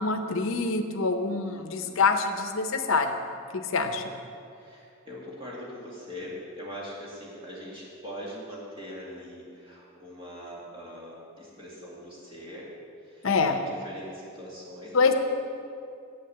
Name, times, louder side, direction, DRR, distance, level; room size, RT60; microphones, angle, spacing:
voice 1, 0.0-3.1 3.5-4.0 13.2-13.6 14.9-15.1, left 4 dB, 70° left, 7 dB, 0.7 m, -25 dB
voice 2, 1.4-2.2 4.5-12.7 13.0-15.1, equal, 25° right, -6 dB, 2.2 m, -42 dB
8.2 x 6.5 x 6.9 m, 2.5 s
head